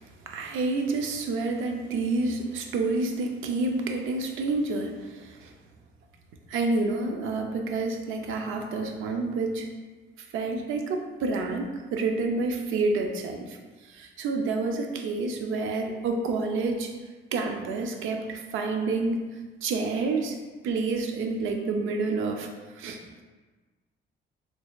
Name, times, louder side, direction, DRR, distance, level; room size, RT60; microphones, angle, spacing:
voice 1, 0.3-5.5 6.5-9.7 10.3-13.6 13.8-16.9 17.3-19.2 19.6-20.4 20.6-22.5 22.8-23.0, right 3 dB, 85° right, 3 dB, 0.5 m, -28 dB
4.2 x 2.7 x 2.3 m, 1.3 s
cardioid pair, 90°, 20 cm